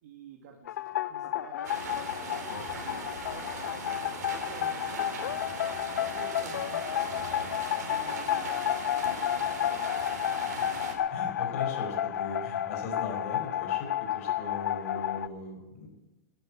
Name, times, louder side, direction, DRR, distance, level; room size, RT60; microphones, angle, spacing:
voice 1, 0.0-7.3 7.8-9.5, right 5 dB, 60° right, 1 dB, 2.0 m, -51 dB
sound 1, 0.7-15.3, left 11 dB, 80° left, 0.6 m, -31 dB
sound 2, 1.6-11.0, right 5 dB, 80° right, 3.1 m, -40 dB
voice 2, 11.1-15.9, left 3 dB, 50° left, 3 dB, 4.9 m, -39 dB
11.5 x 11.0 x 8.8 m, 1.1 s
supercardioid pair, 160°, 9 cm